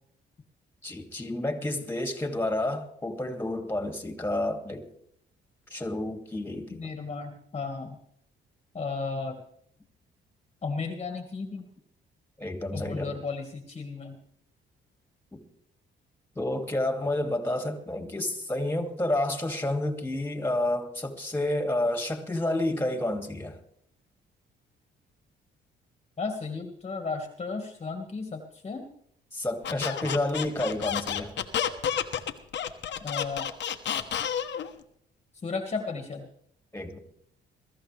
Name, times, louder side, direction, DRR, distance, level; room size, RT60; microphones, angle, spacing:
voice 1, 0.8-4.9 5.7-6.9 12.4-13.2 15.3-15.4 16.4-23.6 29.3-31.3 36.7-37.0, left 1 dB, 10° left, 5 dB, 2.6 m, -30 dB
voice 2, 6.7-8.0 8.7-9.3 10.6-11.6 12.7-14.2 26.2-28.9 33.0-33.5 35.4-36.3, left 4 dB, 30° left, 4 dB, 1.9 m, -34 dB
Squeak, 29.6-34.7, left 9 dB, 65° left, 1.3 m, -30 dB
22.0 x 13.5 x 3.4 m, 0.69 s
cardioid pair, 90°, 20 cm